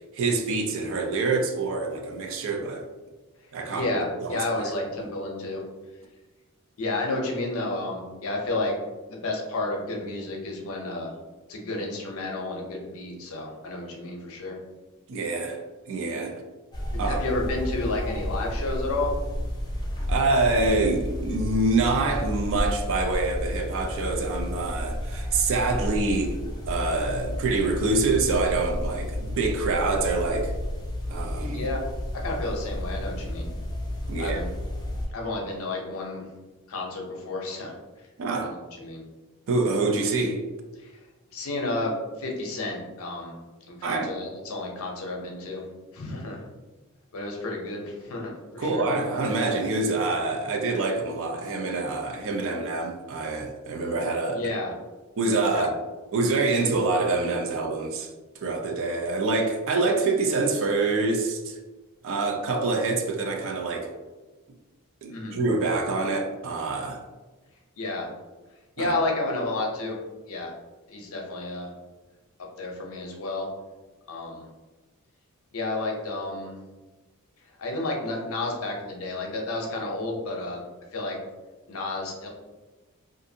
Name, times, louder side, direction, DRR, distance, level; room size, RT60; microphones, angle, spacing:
voice 1, 0.1-2.9 3.5-4.7 15.1-16.4 17.0-17.2 20.1-26.4 26.7-30.5 31.1-31.7 34.1-34.4 38.2-38.5 39.5-40.4 43.8-44.1 48.6-54.5 55.2-55.7 56.1-58.1 58.4-61.6 62.0-63.9 65.0-67.0 68.8-69.0, right 3 dB, 60° right, 0.4 m, -26 dB
voice 2, 3.7-5.6 6.8-8.7 9.1-11.1 11.5-14.6 16.9-19.1 31.5-31.8 32.1-33.5 34.2-34.5 35.1-36.3 36.7-37.7 38.4-38.5 38.8-39.0 40.8-40.9 41.3-43.3 43.7-45.6 45.9-46.4 47.1-48.8 54.3-54.7 55.5-55.7 65.1-65.4 67.8-68.1 68.8-70.0 70.3-70.5 70.9-71.7 72.6-73.5 74.1-74.5 75.5-76.5 77.6-80.6 80.9-81.2 81.7-82.3, left 2 dB, 65° left, 0.6 m, -31 dB
sound 1, 16.7-35.1, left 1 dB, 20° left, 0.4 m, -31 dB
2.5 x 2.5 x 2.6 m
head